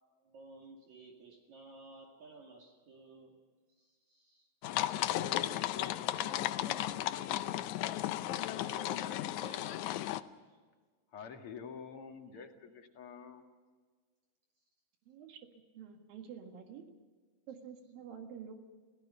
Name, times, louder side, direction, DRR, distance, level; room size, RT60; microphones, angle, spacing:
voice 1, 0.2-3.4 3.8-4.5 8.3-10.6, right 3 dB, 55° right, 0 dB, 3.3 m, -55 dB
sound 1, 4.6-10.2, left 14 dB, 80° left, 1.7 m, -35 dB
voice 2, 5.0-7.6 11.1-13.4, left 6 dB, 45° left, 4 dB, 2.4 m, -48 dB
voice 3, 15.1-15.4 15.8-16.8 17.5-18.5, right 7 dB, 75° right, 4 dB, 3.4 m, -48 dB
30.0 x 16.5 x 5.6 m, 1.5 s
omnidirectional pair, 4.1 m